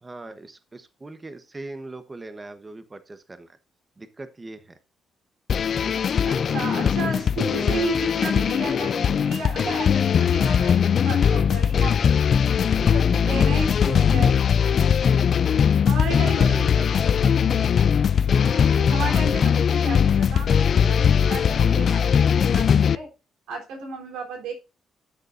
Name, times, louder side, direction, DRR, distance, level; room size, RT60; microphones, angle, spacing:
voice 1, 0.0-3.6 4.0-4.8 5.6-8.0 12.8-13.5 16.4-17.8, right 2 dB, 25° right, 10 dB, 1.0 m, -40 dB
sound 1, 5.5-23.0, left 7 dB, 55° left, 0.4 m, -20 dB
voice 2, 6.2-14.4 15.9-16.7 18.3-23.1 23.5-24.5, right 2 dB, 90° right, 1 dB, 3.6 m, -33 dB
12.5 x 6.8 x 2.6 m, 0.28 s
cardioid pair, 90°, 0 cm